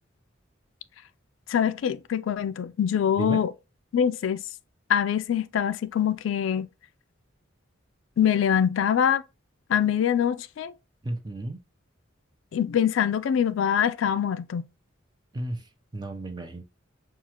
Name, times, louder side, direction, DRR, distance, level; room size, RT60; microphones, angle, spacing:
voice 1, 1.5-3.5 3.9-4.4 4.9-6.7 8.2-9.2 9.7-10.7 12.5-14.7, left 8 dB, 75° left, 0.3 m, -24 dB
voice 2, 11.0-11.6 15.3-16.6, right 1 dB, 20° right, 0.6 m, -33 dB
6.0 x 2.4 x 2.8 m
head